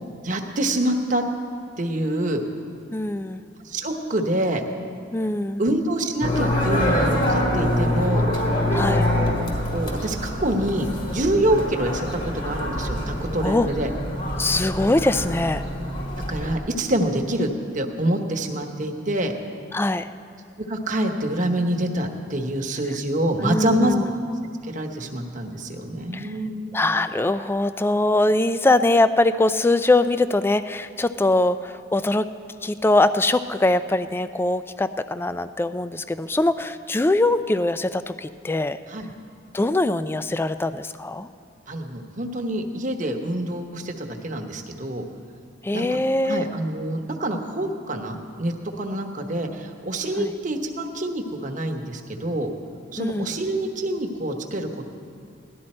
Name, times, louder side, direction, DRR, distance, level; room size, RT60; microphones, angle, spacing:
voice 1, 0.2-1.2 1.8-2.4 3.6-4.6 5.6-8.2 9.5-13.9 16.3-17.5 17.7-19.3 20.6-23.9 24.7-26.7 38.9-39.1 41.7-45.0 45.7-46.0 46.2-52.5 52.9-54.9, right 1 dB, 45° right, 3 dB, 1.1 m, -26 dB
voice 2, 2.9-3.4 5.1-5.6 8.7-9.1 13.4-13.7 14.4-15.6 19.7-20.1 23.4-24.1 26.1-26.3 26.7-32.3 32.6-38.8 39.5-41.3 45.6-46.5 50.2-50.3 53.0-53.3, left 2 dB, 10° left, 12 dB, 0.3 m, -22 dB
sound 1, 6.2-16.5, left 1 dB, 45° left, 2.0 m, -25 dB
17.5 x 12.0 x 4.3 m, 2.3 s
head